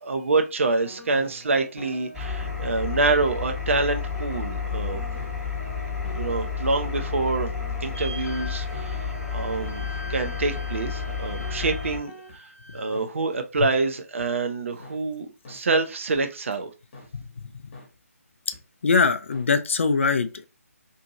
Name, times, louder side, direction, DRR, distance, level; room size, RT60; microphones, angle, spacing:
voice 1, 0.0-5.1 6.1-7.5 7.8-12.1 12.7-16.7, right 3 dB, 55° right, 0.5 m, -26 dB
sound 1, 0.8-12.4 12.9-13.1 13.5-13.7 14.2-14.3 14.8-15.0 15.4-15.6 16.1-16.2 16.9-17.1 17.7-17.9 18.5-18.6 19.3-19.4, equal, 35° left, 1.0 m, -44 dB
Engine, 2.1-12.0, left 6 dB, ahead, 1.0 m, -31 dB
sound 2, 7.9-12.9, equal, 85° left, 0.8 m, -43 dB
voice 2, 17.1-17.5 18.8-20.4, left 4 dB, 50° left, 0.4 m, -23 dB
2.7 x 2.5 x 2.8 m
figure-of-eight pair, 145°, 8 cm